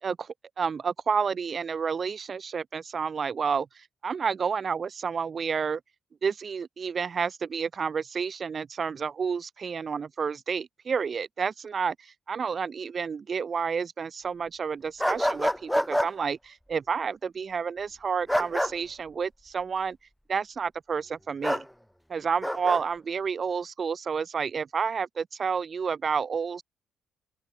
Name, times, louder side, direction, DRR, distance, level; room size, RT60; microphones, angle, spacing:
voice 1, 0.0-5.8 6.2-20.0 20.3-21.6 22.1-26.6, right 6 dB, 45° right, 4.3 m, -30 dB
sound 1, 15.0-16.1 18.3-18.7 21.4-21.6 22.4-22.8, equal, ahead, 6.9 m, -26 dB
open air
cardioid pair, 90°, 0 cm